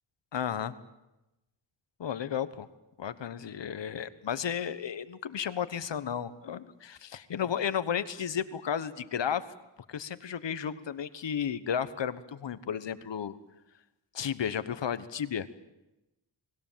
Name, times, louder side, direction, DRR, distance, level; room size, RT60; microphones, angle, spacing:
voice 1, 0.3-0.7 2.0-2.7 3.0-9.4 9.9-13.4 14.1-15.5, left 8 dB, 70° left, 13 dB, 1.3 m, -33 dB
30.0 x 20.5 x 7.5 m, 0.95 s
wide cardioid pair, 120°, 45 cm